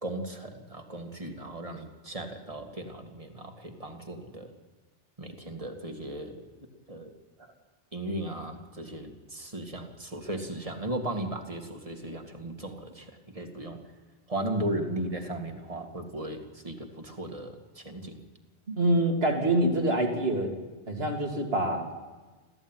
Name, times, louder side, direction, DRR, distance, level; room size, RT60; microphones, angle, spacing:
voice 1, 0.0-4.5 5.2-6.4 6.9-7.1 7.9-13.8 14.3-18.2, right 1 dB, 30° right, 4 dB, 2.4 m, -36 dB
voice 2, 18.7-20.5 20.9-22.1, right 1 dB, 60° right, 2 dB, 3.0 m, -26 dB
28.5 x 14.5 x 9.2 m, 1.3 s
omnidirectional pair, 1.2 m